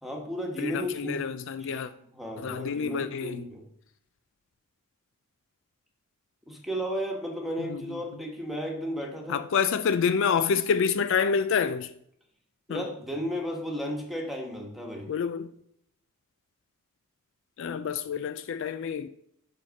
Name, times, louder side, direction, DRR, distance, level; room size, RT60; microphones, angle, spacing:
voice 1, 0.0-3.6 6.5-9.4 12.7-15.1, equal, ahead, 1.4 m, -34 dB
voice 2, 0.6-1.9 2.4-3.4 7.6-8.0 9.3-11.9 12.7-12.8 15.1-15.5 17.6-19.1, left 6 dB, 60° left, 0.3 m, -28 dB
7.8 x 4.2 x 6.3 m
head